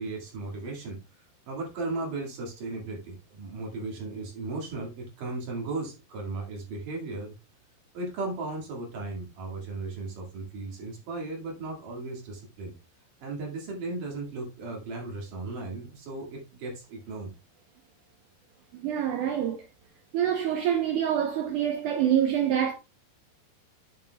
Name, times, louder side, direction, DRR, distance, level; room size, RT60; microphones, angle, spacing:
voice 1, 0.0-7.3 7.9-12.7 13.2-17.3, right 3 dB, 55° right, 3.4 m, -36 dB
voice 2, 18.7-19.6 20.1-22.7, right 9 dB, 90° right, 1.7 m, -26 dB
8.9 x 8.5 x 2.3 m
omnidirectional pair, 4.9 m